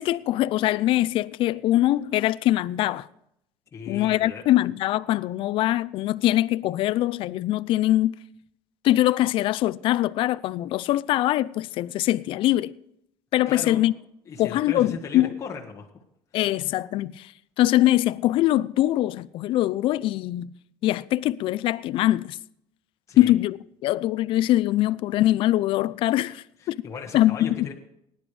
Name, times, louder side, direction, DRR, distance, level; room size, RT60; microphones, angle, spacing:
voice 1, 0.0-3.1 3.9-8.1 8.8-12.7 13.3-13.9 14.4-15.3 16.3-17.3 17.6-20.5 20.8-22.4 23.2-26.8 27.1-27.7, left 14 dB, 50° left, 0.4 m, -23 dB
voice 2, 3.7-4.4 13.5-13.9 14.3-16.0 23.1-23.3 26.6-27.7, left 5 dB, 25° left, 1.4 m, -37 dB
19.5 x 10.5 x 3.3 m
cardioid pair, 140°, 11 cm